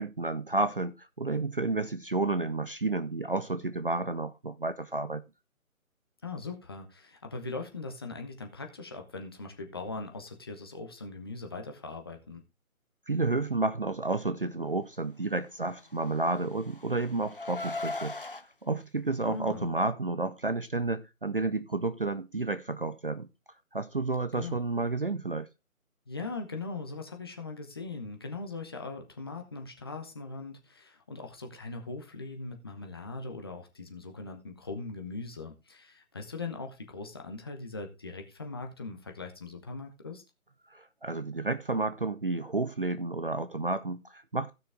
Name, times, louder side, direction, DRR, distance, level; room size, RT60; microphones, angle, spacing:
voice 1, 0.0-5.2 13.1-18.2 18.6-23.3 23.7-25.5 40.7-44.5, right 3 dB, 40° right, 0.6 m, -31 dB
voice 2, 6.2-12.4 19.2-19.7 24.3-24.6 26.1-40.2, left 3 dB, 15° left, 1.0 m, -40 dB
Car, 15.9-18.4, left 2 dB, 40° left, 0.4 m, -38 dB
15.5 x 6.2 x 3.5 m
figure-of-eight pair, 155°, 42 cm